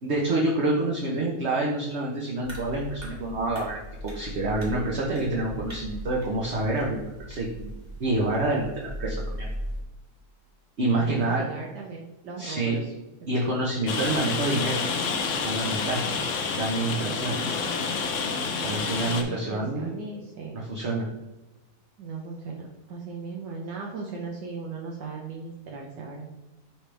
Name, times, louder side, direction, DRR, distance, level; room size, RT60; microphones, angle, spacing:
voice 1, 0.0-7.7 8.0-9.5 10.8-11.4 12.4-12.8 13.3-14.8 15.4-16.0 16.6-17.4 18.6-19.9 20.5-21.0, right 2 dB, 45° right, -3 dB, 1.0 m, -27 dB
sound 1, 2.4-9.8, equal, 25° right, 1.4 m, -38 dB
voice 2, 10.9-12.9 16.2-16.3 17.0-17.9 19.0-20.6 22.0-26.3, right 4 dB, 75° right, -1 dB, 1.4 m, -38 dB
Rain, 13.9-19.2, left 5 dB, 60° left, 0.9 m, -29 dB
6.0 x 4.9 x 3.3 m, 1.0 s
omnidirectional pair, 1.9 m